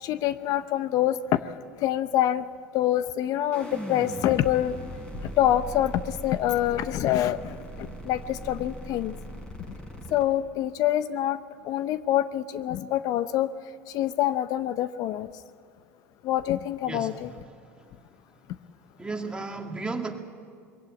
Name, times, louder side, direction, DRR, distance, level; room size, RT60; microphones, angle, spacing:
voice 1, 0.0-1.4 1.8-2.4 2.7-4.8 5.4-9.1 10.1-11.4 11.6-13.5 13.9-15.3 16.2-17.3, left 12 dB, 55° left, 14 dB, 0.6 m, -26 dB
sound 1, 3.5-10.2, equal, 10° left, 5.5 m, -39 dB
voice 2, 16.9-17.4 17.8-17.9 19.0-20.2, right 3 dB, 15° right, 3 dB, 2.2 m, -34 dB
22.0 x 15.5 x 8.8 m, 2.2 s
hypercardioid pair, 85°, 7 cm